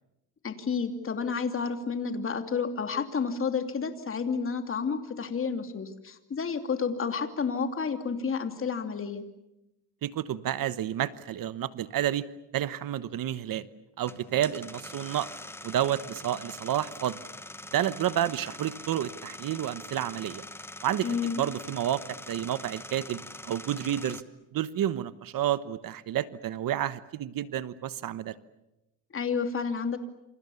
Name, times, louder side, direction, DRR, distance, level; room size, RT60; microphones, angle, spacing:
voice 1, 0.4-9.2 21.0-21.4 29.1-30.0, left 5 dB, 30° left, 7 dB, 2.7 m, -30 dB
voice 2, 10.0-12.2 12.5-13.7 14.0-15.3 15.6-17.2 17.7-20.4 20.8-24.2 24.5-28.3, right 11 dB, 55° right, 15 dB, 1.2 m, -30 dB
sound 1, 14.0-24.2, left 1 dB, 5° left, 1.2 m, -43 dB
28.5 x 27.0 x 7.1 m, 0.92 s
cardioid pair, 130°, 41 cm